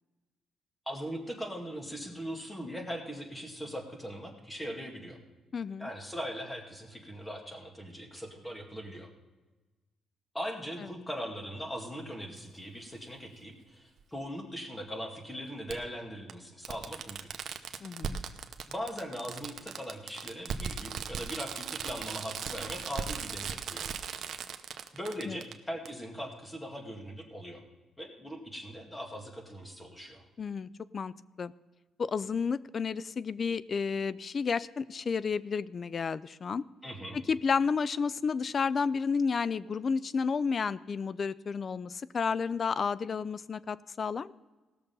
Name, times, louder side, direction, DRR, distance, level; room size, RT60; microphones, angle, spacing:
voice 1, 0.9-5.2 5.8-9.1 10.3-17.3 18.7-23.9 24.9-27.6 28.0-30.2 36.8-37.2, equal, 10° left, 2 dB, 2.2 m, -40 dB
voice 2, 5.5-5.9 17.8-18.2 25.2-25.4 30.4-31.1 31.4-31.5 32.0-36.6 37.3-44.3, left 5 dB, 45° left, 18 dB, 0.4 m, -31 dB
Fireworks, 12.4-12.5 14.0-14.1 15.7-15.8 16.3-16.4 16.7-25.5 25.9-26.0, right 7 dB, 65° right, 0.8 m, -38 dB
17.5 x 6.8 x 5.4 m, 1.2 s
cardioid pair, 90°, 0 cm